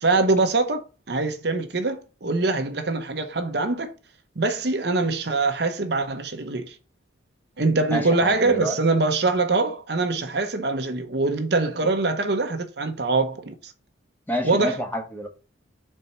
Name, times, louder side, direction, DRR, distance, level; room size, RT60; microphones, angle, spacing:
voice 1, 0.0-0.8 1.1-3.9 4.4-6.8 7.6-13.7 14.4-14.8, right 3 dB, 55° right, 0.9 m, -23 dB
voice 2, 7.9-8.8 14.3-15.3, equal, 10° left, 1.1 m, -28 dB
4.5 x 4.4 x 5.4 m
head